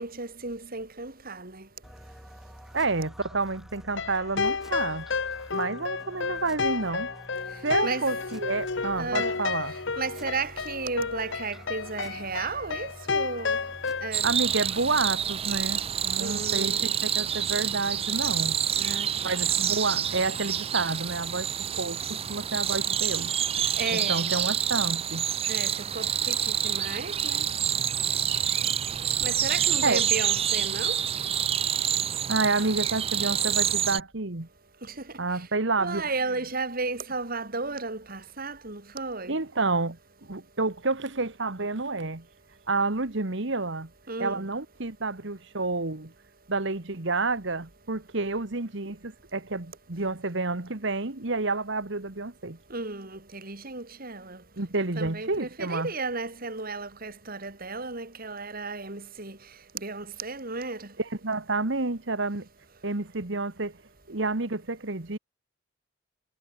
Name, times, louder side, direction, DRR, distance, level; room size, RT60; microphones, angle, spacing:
voice 1, 0.0-1.6 7.8-8.1 9.0-9.4 10.0-13.6 14.0-14.3 16.2-16.9 18.8-19.4 23.8-24.3 25.5-27.5 29.2-31.0 34.9-35.0 35.8-39.4 44.1-44.4 52.7-54.4 54.8-59.4 59.8-60.9, right 3 dB, 45° right, 3.4 m, -34 dB
sound 1, 1.8-16.6, equal, ahead, 5.4 m, -48 dB
voice 2, 2.7-5.1 5.5-7.1 7.6-9.7 14.2-18.6 19.2-23.3 23.9-25.3 29.8-30.0 32.3-34.5 35.2-36.0 39.3-40.0 40.3-42.3 42.7-43.9 44.2-46.1 46.5-52.6 54.6-55.9 61.2-62.5 62.8-63.7 64.1-65.2, right 3 dB, 65° right, 1.7 m, -29 dB
sound 2, 3.9-14.1, left 5 dB, 65° left, 1.1 m, -31 dB
sound 3, 14.1-34.0, right 9 dB, 30° right, 0.5 m, -27 dB
head